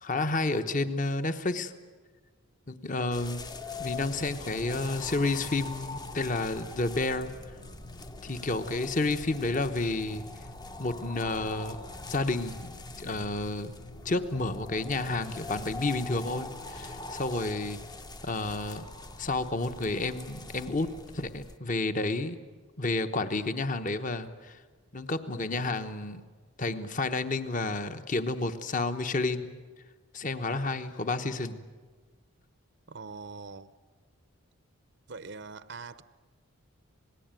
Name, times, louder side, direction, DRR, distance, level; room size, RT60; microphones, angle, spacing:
voice 1, 0.0-1.7 2.7-3.4 3.8-7.3 8.2-10.2 10.8-11.8 12.1-13.7 14.0-17.8 18.2-18.9 19.2-20.9 21.1-22.4 22.8-24.6 24.9-26.2 26.6-29.6 30.1-31.6, left 2 dB, 35° left, 1.1 m, -30 dB
sound 1, 3.1-21.6, left 2 dB, 20° left, 0.8 m, -43 dB
sound 2, 4.1-17.1, left 2 dB, 65° left, 3.8 m, -51 dB
voice 2, 32.9-33.7 35.1-36.0, right 4 dB, 55° right, 0.7 m, -42 dB
27.0 x 19.5 x 9.1 m
head